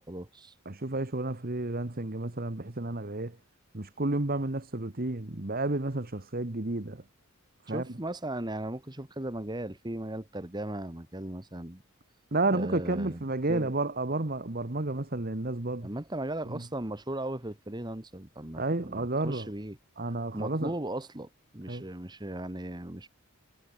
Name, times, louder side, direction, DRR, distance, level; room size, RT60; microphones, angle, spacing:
voice 1, 0.0-0.5 7.7-11.8 12.5-13.2 13.5-13.7 15.8-19.8 20.3-23.1, right 1 dB, 20° right, 1.4 m, -37 dB
voice 2, 0.6-3.4 3.7-7.0 7.7-7.9 12.3-15.9 16.5-16.6 18.6-19.5 20.0-20.7 21.7-21.9, right 2 dB, 40° right, 1.4 m, -31 dB
head